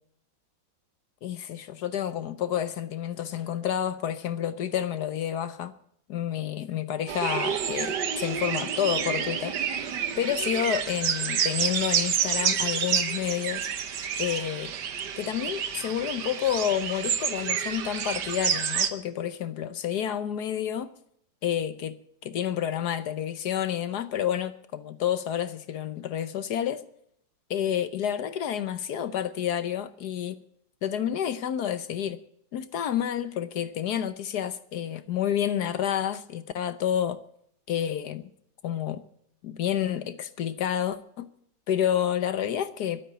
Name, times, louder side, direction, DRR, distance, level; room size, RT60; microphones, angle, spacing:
voice 1, 1.2-5.7 6.1-9.6 10.2-13.7 14.2-14.7 15.2-20.9 21.4-22.0 22.2-26.8 27.5-30.4 30.8-32.2 32.5-37.2 37.7-38.2 38.6-39.0 39.4-41.3 41.7-43.0, left 10 dB, 65° left, 1.3 m, -29 dB
sound 1, 7.1-18.9, right 8 dB, 65° right, 1.6 m, -29 dB
12.0 x 9.1 x 9.5 m
omnidirectional pair, 2.0 m